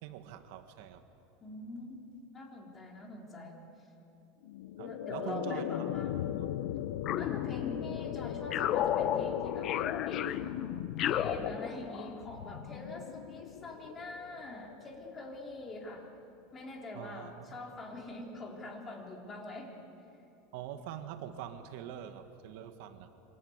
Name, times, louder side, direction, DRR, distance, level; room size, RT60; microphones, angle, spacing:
voice 1, 0.0-1.1 4.8-5.6 6.3-6.5 16.9-17.6 20.5-23.1, right 11 dB, 60° right, 7 dB, 1.7 m, -44 dB
voice 2, 1.4-2.0 2.3-3.6 4.8-6.3 7.2-10.3 11.0-16.1 16.5-19.7, left 2 dB, 20° left, 0 dB, 3.7 m, -44 dB
sound 1, 4.4-15.6, left 12 dB, 80° left, 0.9 m, -39 dB
sound 2, 7.0-8.0 8.5-12.2, left 10 dB, 35° left, 0.9 m, -33 dB
28.0 x 25.5 x 8.1 m, 2.9 s
supercardioid pair, 160°, 0 cm